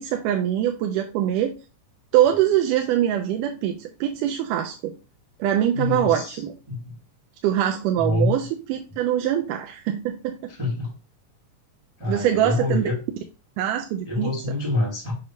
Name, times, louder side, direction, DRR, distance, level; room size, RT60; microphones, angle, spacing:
voice 1, 0.0-1.5 2.1-4.9 5.4-6.5 7.4-10.4 12.1-12.9 13.6-14.3, right 11 dB, 85° right, 3 dB, 2.2 m, -23 dB
voice 2, 5.7-6.4 6.7-6.9 8.0-8.4 10.6-10.9 12.0-12.9 14.0-15.1, left 2 dB, 20° right, -3 dB, 0.7 m, -26 dB
6.6 x 2.7 x 5.6 m, 0.30 s
omnidirectional pair, 3.8 m